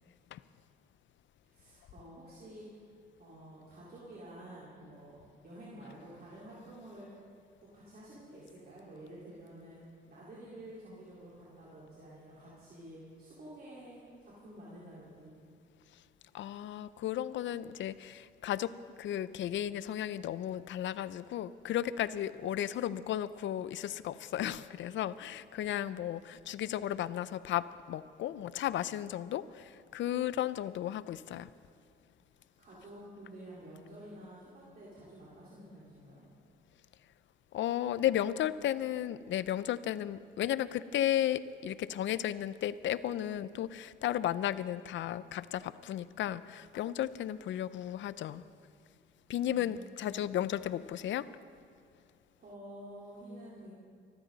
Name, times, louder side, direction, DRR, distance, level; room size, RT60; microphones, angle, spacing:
voice 1, 1.4-2.9 3.2-7.3 7.6-15.4 32.3-36.2 49.5-50.1 52.4-53.7, right 1 dB, 50° right, -8 dB, 4.1 m, -50 dB
voice 2, 16.3-31.5 37.5-48.4 49.3-51.3, left 11 dB, 70° left, 16 dB, 0.6 m, -34 dB
24.0 x 13.5 x 4.0 m, 2.2 s
cardioid pair, 90°, 20 cm